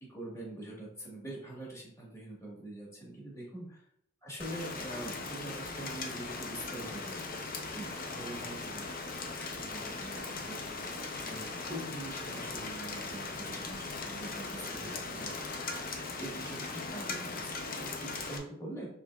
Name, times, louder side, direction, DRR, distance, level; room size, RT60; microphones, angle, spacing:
voice 1, 0.1-3.8 4.2-7.4 7.7-10.6 11.2-15.3 16.2-18.9, right 1 dB, 15° left, -4 dB, 1.4 m, -44 dB
Rain, 4.4-18.4, left 3 dB, 45° left, 0.6 m, -39 dB
5.5 x 3.8 x 2.3 m, 0.71 s
head